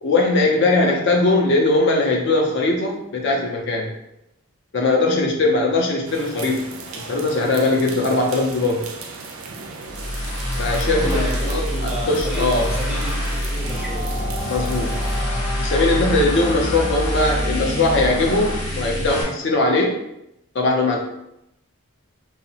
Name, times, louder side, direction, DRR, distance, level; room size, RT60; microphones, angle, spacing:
voice 1, 0.0-3.9 4.7-8.8 10.6-12.7 14.5-15.0 15.6-20.0 20.5-21.0, left 2 dB, 55° left, 0 dB, 0.4 m, -20 dB
sound 1, 6.1-15.2, right 4 dB, 70° right, 0.4 m, -36 dB
sound 2, 9.9-19.2, equal, 85° left, 0.8 m, -26 dB
voice 2, 10.9-14.1, equal, 5° right, -5 dB, 0.5 m, -31 dB
sound 3, 13.6-18.6, left 1 dB, 30° left, 0.7 m, -31 dB
2.7 x 2.0 x 2.6 m, 0.82 s
head